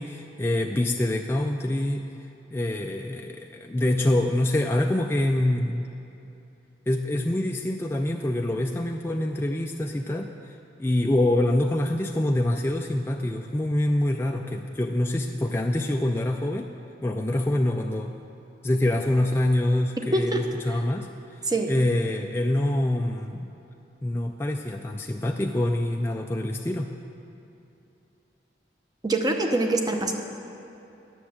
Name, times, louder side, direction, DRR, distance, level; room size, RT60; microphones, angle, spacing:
voice 1, 0.0-2.1 2.5-5.9 6.9-10.5 10.8-16.7 17.0-18.2 18.6-21.4 21.7-23.6 24.0-26.9, left 1 dB, 15° left, 2 dB, 0.3 m, -25 dB
voice 2, 29.0-30.1, right 2 dB, 20° right, 4 dB, 0.7 m, -24 dB
9.8 x 6.9 x 7.3 m, 2.8 s
head